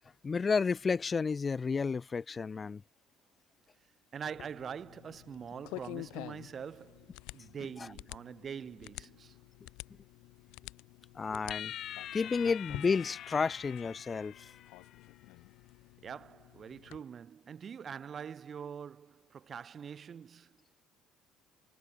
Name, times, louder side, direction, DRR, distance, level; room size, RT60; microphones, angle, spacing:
voice 1, 0.2-2.8 11.2-11.7 12.1-14.3, left 5 dB, 15° left, 0.7 m, -31 dB
voice 2, 4.1-9.4 16.0-20.6, right 7 dB, 25° right, 1.9 m, -44 dB
sound 1, 4.3-17.0, left 24 dB, 80° left, 6.2 m, -49 dB
sound 2, 11.5-15.1, left 11 dB, 40° left, 2.0 m, -44 dB
cardioid pair, 180°, 0 cm